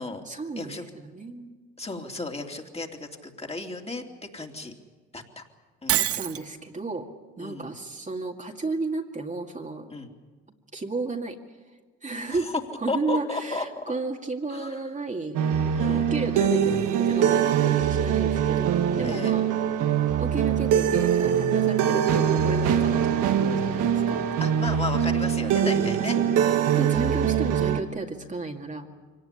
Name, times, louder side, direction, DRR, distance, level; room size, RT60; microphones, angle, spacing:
voice 1, 0.3-1.6 5.9-7.1 7.4-9.9 10.7-11.4 12.0-12.5 12.8-15.4 15.9-19.5 20.2-24.3 25.6-26.4 26.7-28.9, right 3 dB, 25° right, 2 dB, 2.2 m, -33 dB
voice 2, 1.8-4.0 4.3-4.7 5.1-5.4 5.8-6.1 7.4-7.7 9.9-10.1 12.3-12.6 12.9-13.8 14.5-14.8 15.8-16.1 19.0-19.3 24.4-27.3, left 2 dB, 20° left, 3 dB, 3.0 m, -34 dB
Shatter, 5.9-6.4, right 11 dB, 50° right, 0.7 m, -25 dB
sound 1, 15.3-27.8, right 8 dB, 75° right, 1.8 m, -23 dB
23.5 x 18.5 x 9.9 m, 1.4 s
supercardioid pair, 70°, 31 cm